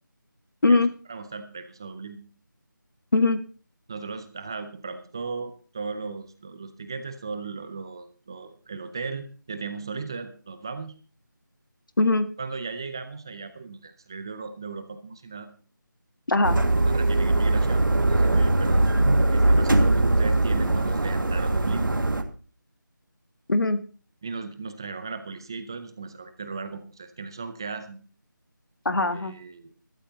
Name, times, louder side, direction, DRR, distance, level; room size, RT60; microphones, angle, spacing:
voice 1, 1.1-2.2 3.9-11.0 12.4-15.5 16.9-18.8 19.3-21.9 24.2-28.0 29.1-29.7, right 4 dB, 10° right, 10 dB, 0.5 m, -36 dB
voice 2, 3.1-3.4 12.0-12.3 16.3-16.6 23.5-23.8 28.8-29.3, left 2 dB, 75° left, 9 dB, 1.6 m, -21 dB
sound 1, 16.4-22.2, right 2 dB, 75° right, 2.0 m, -21 dB
20.0 x 12.5 x 2.8 m, 0.38 s
figure-of-eight pair, 170°, 11 cm